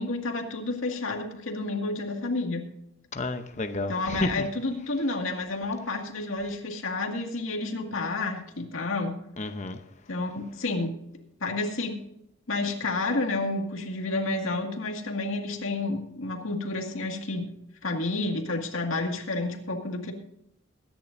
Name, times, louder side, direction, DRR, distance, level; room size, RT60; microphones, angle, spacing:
voice 1, 0.0-2.7 3.9-9.2 10.1-11.0 11.4-12.0 12.5-17.5 17.8-20.1, left 2 dB, 85° left, 2.1 m, -30 dB
voice 2, 3.1-4.4 9.4-9.8, left 2 dB, 35° left, 0.8 m, -31 dB
22.5 x 10.5 x 2.6 m
head